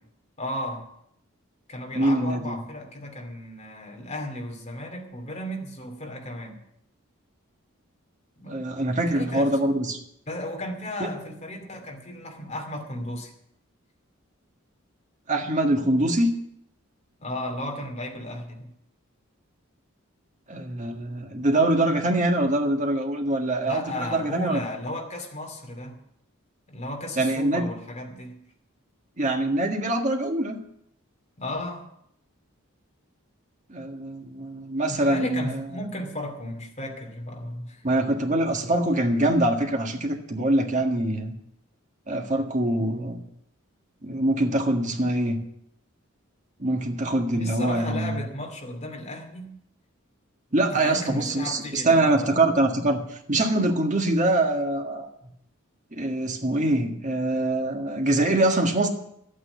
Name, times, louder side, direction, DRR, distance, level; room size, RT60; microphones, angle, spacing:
voice 1, 0.4-0.9 1.7-6.6 8.4-8.6 8.9-9.7 10.3-13.3 17.2-18.7 23.6-26.0 26.7-28.4 31.4-31.8 34.9-37.8 47.3-49.5 50.7-52.5, left 1 dB, 30° left, 2 dB, 2.6 m, -35 dB
voice 2, 1.9-2.6 8.4-10.0 11.0-11.1 15.3-16.3 20.5-24.6 27.2-27.7 29.2-30.6 33.7-35.7 37.8-41.3 42.1-43.2 44.0-45.4 46.6-48.2 50.5-55.1 55.9-58.9, right 1 dB, 35° right, 3 dB, 1.7 m, -24 dB
12.5 x 9.0 x 8.1 m, 0.73 s
head